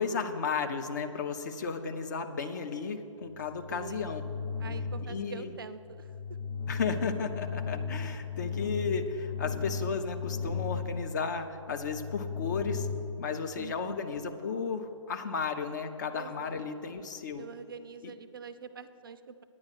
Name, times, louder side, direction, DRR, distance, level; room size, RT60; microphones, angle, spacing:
voice 1, 0.0-4.2 5.1-5.5 6.7-12.9 13.2-17.5, left 5 dB, 35° left, 6 dB, 0.6 m, -34 dB
sound 1, 3.3-14.0, left 5 dB, 65° left, 1.3 m, -37 dB
voice 2, 3.7-4.2 4.6-6.1 13.5-14.1 16.1-16.7 17.4-19.4, right 5 dB, 40° right, 12 dB, 0.4 m, -45 dB
9.8 x 8.7 x 6.2 m, 2.6 s
figure-of-eight pair, 135°, 17 cm